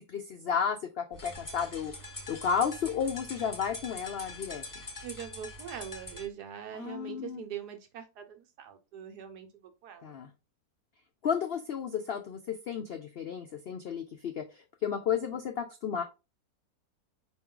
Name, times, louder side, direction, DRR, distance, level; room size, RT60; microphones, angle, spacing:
voice 1, 0.0-1.9 2.3-4.6 6.7-7.4 10.0-10.3 11.2-16.0, left 7 dB, 80° left, 5 dB, 0.5 m, -32 dB
sound 1, 1.1-6.3, left 2 dB, 20° left, 0.6 m, -44 dB
voice 2, 5.0-10.1, right 9 dB, 90° right, 6 dB, 1.4 m, -42 dB
4.6 x 3.1 x 3.7 m, 0.27 s
omnidirectional pair, 1.7 m